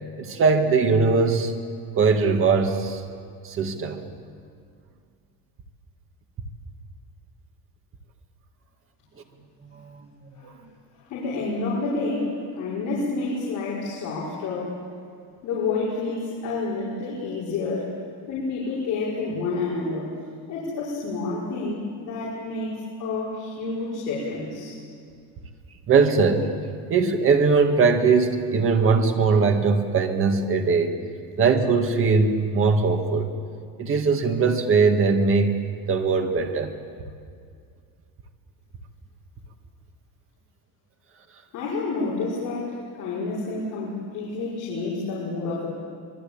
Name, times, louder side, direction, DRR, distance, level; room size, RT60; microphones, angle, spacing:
voice 1, 0.2-1.5 2.0-3.0 3.4-4.0 9.6-10.1 10.4-10.5 25.9-26.5 26.9-31.0 31.4-33.3 33.8-35.6 35.9-36.7, right 4 dB, 30° right, 4 dB, 2.0 m, -20 dB
voice 2, 11.1-14.7 15.4-17.9 18.3-20.1 20.5-22.7 23.0-24.8 41.5-45.7, left 3 dB, 50° left, -7 dB, 5.8 m, -29 dB
25.5 x 22.5 x 8.8 m, 2.3 s
cardioid pair, 175°, 41 cm